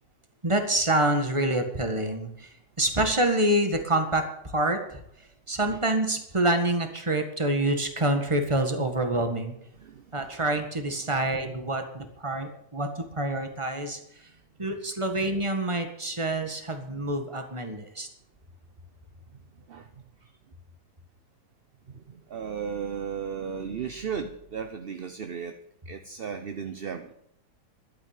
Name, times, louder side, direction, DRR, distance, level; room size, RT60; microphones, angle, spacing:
voice 1, 0.4-5.0 5.5-9.6 10.1-14.3 14.6-18.1, right 1 dB, 20° right, 6 dB, 1.7 m, -27 dB
voice 2, 9.8-10.3 19.7-19.9 20.2-20.3 21.9-25.6 25.9-27.1, right 7 dB, 45° right, 8 dB, 0.8 m, -35 dB
12.0 x 8.8 x 8.9 m, 0.74 s
omnidirectional pair, 1.7 m